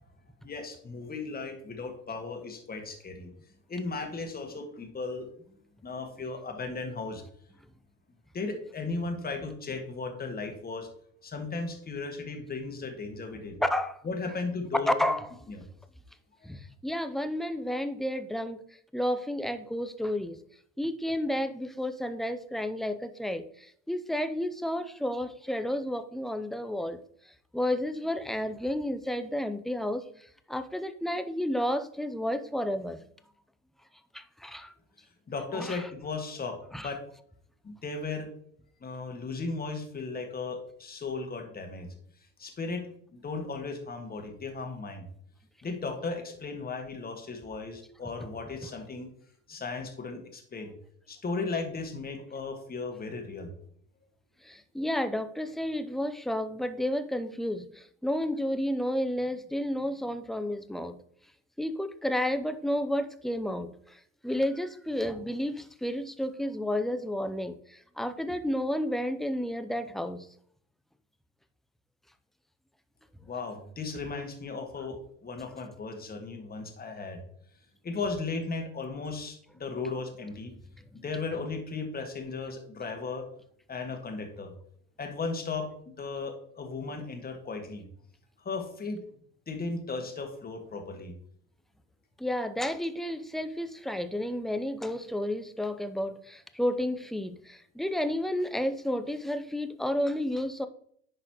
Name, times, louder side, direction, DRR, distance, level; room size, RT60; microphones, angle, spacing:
voice 1, 0.4-3.3 3.7-5.3 5.8-7.2 8.3-10.9 11.2-13.6 14.0-14.9 15.5-15.6 16.4-16.5 35.3-37.0 37.6-38.3 38.8-41.9 42.4-42.8 43.1-45.1 45.6-49.1 49.5-50.7 51.1-53.5 73.3-77.2 77.8-80.5 81.0-83.2 83.7-84.5 85.0-87.8 88.4-89.0 89.5-91.1, left 3 dB, 25° left, 4 dB, 1.6 m, -36 dB
voice 2, 13.6-14.0 14.9-15.3 16.4-18.6 18.9-20.4 20.8-27.0 27.5-33.0 34.1-34.7 35.5-35.8 36.7-36.9 54.4-61.0 61.6-70.3 92.2-100.7, left 1 dB, ahead, 10 dB, 0.4 m, -31 dB
10.5 x 3.9 x 2.9 m, 0.63 s
hypercardioid pair, 80°, 39 cm